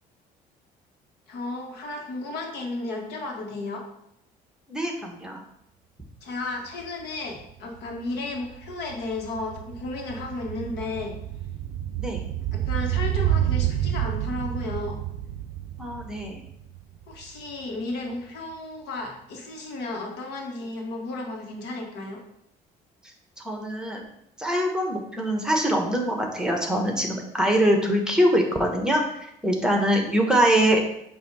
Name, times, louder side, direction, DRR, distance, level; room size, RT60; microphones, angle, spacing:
voice 1, 1.3-3.8 6.2-11.2 12.5-15.0 17.1-22.2, left 2 dB, 80° left, 1 dB, 1.4 m, -33 dB
voice 2, 4.7-5.4 12.0-12.2 15.8-16.4 23.4-24.0 24.4-30.8, equal, 5° right, 2 dB, 1.1 m, -23 dB
sound 1, 6.8-6.9 7.2-17.5 17.8-17.9, right 11 dB, 75° right, 0.4 m, -30 dB
8.2 x 2.7 x 4.7 m, 0.76 s
cardioid pair, 110°, 17 cm